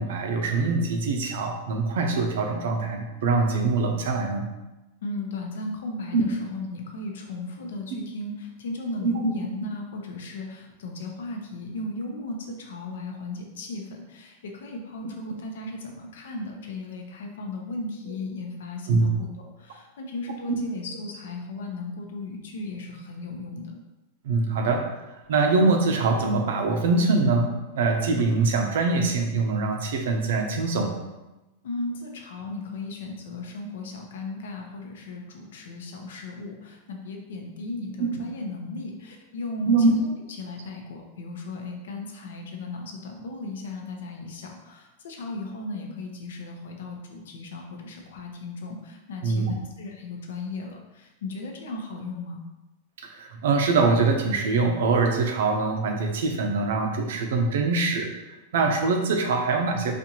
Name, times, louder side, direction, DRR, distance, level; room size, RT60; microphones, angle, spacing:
voice 1, 0.0-4.5 6.1-6.2 9.0-9.3 18.9-19.0 24.2-24.9 25.3-30.9 39.6-39.9 49.2-49.5 53.0-59.9, right 3 dB, 70° right, 3 dB, 0.6 m, -23 dB
voice 2, 5.0-23.8 31.6-40.1 40.4-52.4, left 2 dB, 85° left, 2 dB, 0.7 m, -36 dB
4.2 x 2.5 x 2.9 m, 1.0 s
supercardioid pair, 175°, 0 cm